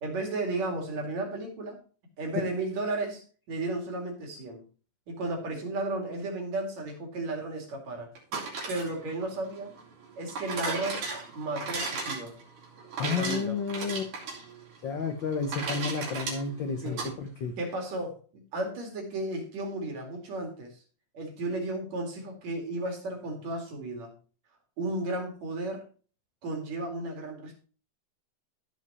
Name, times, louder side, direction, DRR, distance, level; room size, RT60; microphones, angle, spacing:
voice 1, 0.0-1.8 2.2-4.6 5.1-8.1 8.7-9.8 10.2-11.1 11.4-12.4 13.0-13.6 16.8-17.1 17.6-20.8 21.1-24.1 24.8-25.8 26.4-27.6, right 2 dB, 60° right, 3 dB, 3.6 m, -34 dB
sound 1, 8.2-17.1, right 4 dB, 80° right, 4.6 m, -36 dB
voice 2, 13.0-14.1 14.8-17.5, left 5 dB, 85° left, 6 dB, 1.0 m, -31 dB
15.0 x 5.2 x 4.2 m, 0.38 s
omnidirectional pair, 3.5 m